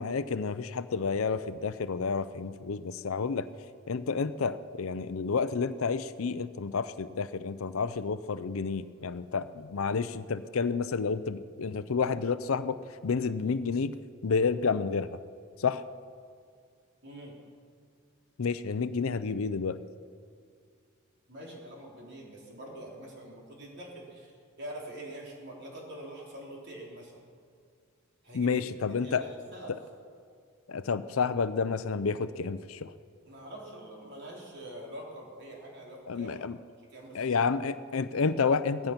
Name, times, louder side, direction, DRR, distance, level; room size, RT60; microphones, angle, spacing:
voice 1, 0.0-3.5 3.9-14.0 14.2-15.2 15.6-15.8 18.4-19.8 28.3-29.2 30.7-32.9 36.1-36.6 37.1-38.9, left 5 dB, 75° left, 12 dB, 0.6 m, -30 dB
voice 2, 17.0-17.4 21.3-27.1 28.2-28.5 28.8-29.8 33.2-36.4 36.9-37.4, right 1 dB, 55° right, -2 dB, 3.6 m, -45 dB
17.0 x 14.5 x 5.9 m, 2.2 s
head